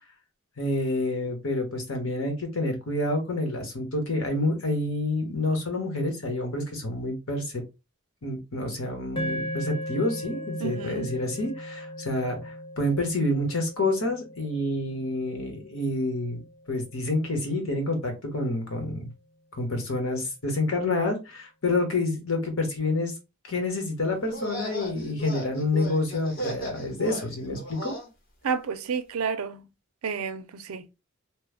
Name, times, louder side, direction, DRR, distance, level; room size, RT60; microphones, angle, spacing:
voice 1, 0.6-7.6 8.2-16.4 16.7-19.1 19.6-23.1 23.5-27.9, left 2 dB, 75° left, 1.2 m, -28 dB
sound 1, 9.2-17.5, equal, 20° left, 0.6 m, -38 dB
voice 2, 10.6-11.1 28.4-29.6 30.0-30.9, right 6 dB, 85° right, 0.5 m, -30 dB
sound 2, 24.2-28.1, equal, 40° left, 0.9 m, -36 dB
3.0 x 2.3 x 3.4 m
head